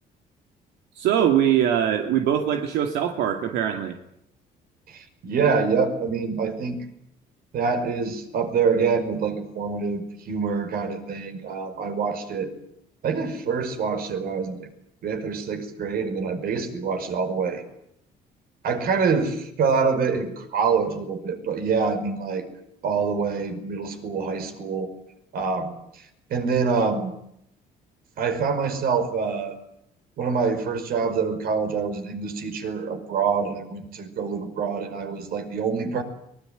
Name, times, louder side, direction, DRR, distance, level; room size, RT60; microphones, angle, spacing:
voice 1, 1.0-3.9, right 10 dB, 80° right, 5 dB, 2.5 m, -22 dB
voice 2, 4.9-6.8 7.5-12.5 13.0-14.7 15.0-17.6 18.6-22.4 22.8-24.9 25.3-27.1 28.2-29.6 30.2-36.0, right 5 dB, 60° right, 7 dB, 5.4 m, -26 dB
23.5 x 21.0 x 9.2 m, 0.76 s
cardioid pair, 110°, 17 cm